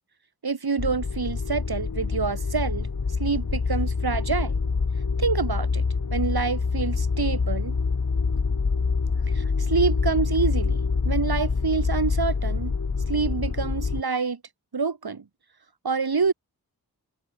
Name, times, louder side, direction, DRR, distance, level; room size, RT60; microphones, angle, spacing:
voice 1, 0.4-2.9 3.2-4.5 5.2-5.8 6.1-7.8 9.3-10.8 11.0-12.7 13.1-14.4 14.7-15.2 15.8-16.3, right 5 dB, 90° right, 7.3 m, -27 dB
sound 1, 0.8-14.0, left 4 dB, 60° left, 2.7 m, -26 dB
open air
wide cardioid pair, 70°, 36 cm